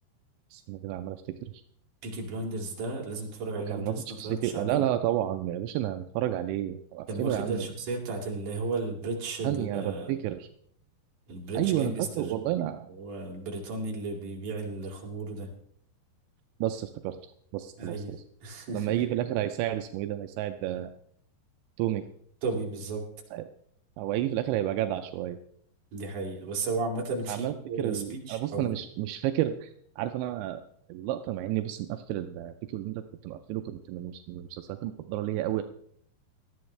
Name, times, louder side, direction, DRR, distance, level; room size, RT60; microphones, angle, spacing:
voice 1, 0.5-1.5 3.6-7.7 9.4-10.5 11.6-12.9 16.6-17.2 17.5-18.2 18.7-20.9 21.8-22.1 23.3-23.4 24.0-25.4 27.3-30.6 30.9-35.6, right 13 dB, 85° right, 7 dB, 2.9 m, -31 dB
voice 2, 2.0-4.8 7.1-10.1 11.3-12.5 12.9-15.5 17.8-18.1 18.4-19.0 22.4-23.0 25.9-28.8, right 3 dB, 50° right, -1 dB, 3.8 m, -34 dB
19.0 x 13.5 x 3.2 m, 0.65 s
omnidirectional pair, 5.2 m